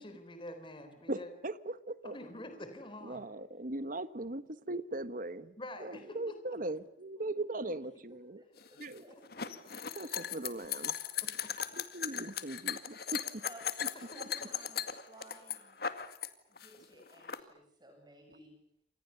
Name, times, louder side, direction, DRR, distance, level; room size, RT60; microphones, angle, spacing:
voice 1, 0.0-1.3 2.0-3.2 5.6-6.4 9.3-9.5 11.2-11.5 13.9-14.5, left 1 dB, 30° left, 8 dB, 4.0 m, -47 dB
voice 2, 1.1-2.2 3.0-8.4 8.8-9.1 9.9-10.9 11.8-13.4, right 2 dB, 50° right, 13 dB, 1.4 m, -39 dB
voice 3, 8.4-9.1 13.4-13.6 14.1-14.8 15.1-15.9 16.5-18.5, right 1 dB, 25° right, 4 dB, 7.4 m, -57 dB
sound 1, 8.6-16.3 16.6-17.4, left 8 dB, 60° left, 2.1 m, -38 dB
29.0 x 27.0 x 7.0 m, 0.69 s
head